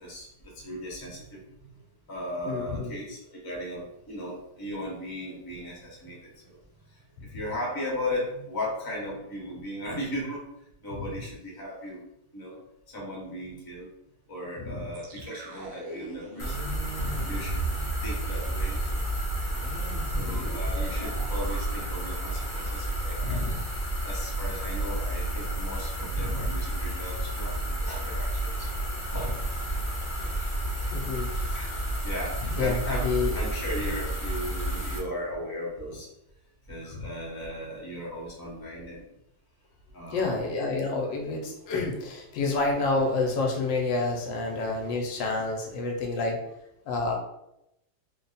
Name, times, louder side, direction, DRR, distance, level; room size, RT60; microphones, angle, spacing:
voice 1, 0.0-1.4 2.1-6.6 7.2-10.5 10.8-12.0 12.3-12.6 12.9-13.9 14.3-16.8 17.2-17.6 18.0-19.0 20.1-23.5 24.0-28.7 29.1-29.3 31.5-31.8 32.0-33.1 33.3-36.1 36.7-39.1 39.9-40.4, left 1 dB, 15° left, -4 dB, 0.7 m, -37 dB
voice 2, 2.4-2.9 11.0-11.1 14.6-14.9 17.0-17.3 20.1-20.6 23.2-23.6 26.1-26.5 29.2-29.3 30.9-31.3 32.4-33.4 36.9-37.0 40.1-46.4 46.9-47.1, left 3 dB, 80° left, 1 dB, 1.3 m, -29 dB
sound 1, 14.9-24.0 24.3-24.4 24.8-25.2, right 3 dB, 85° right, 0.6 m, -39 dB
sound 2, 16.4-35.0, right 1 dB, 50° left, 0.3 m, -31 dB
3.4 x 2.2 x 4.0 m, 0.83 s
omnidirectional pair, 2.0 m